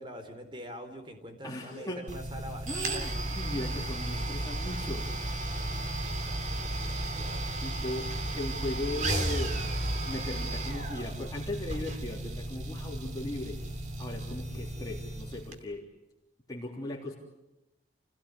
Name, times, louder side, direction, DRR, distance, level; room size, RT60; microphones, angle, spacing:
voice 1, 0.0-3.8 6.2-7.5, equal, 30° right, 7 dB, 3.9 m, -45 dB
voice 2, 1.4-2.0 2.6-5.1 7.3-13.6 14.0-15.8 16.5-17.2, left 1 dB, 20° left, -1 dB, 3.3 m, -38 dB
sound 1, 2.1-15.6, right 1 dB, 45° right, 3.0 m, -34 dB
30.0 x 17.5 x 9.8 m, 0.93 s
head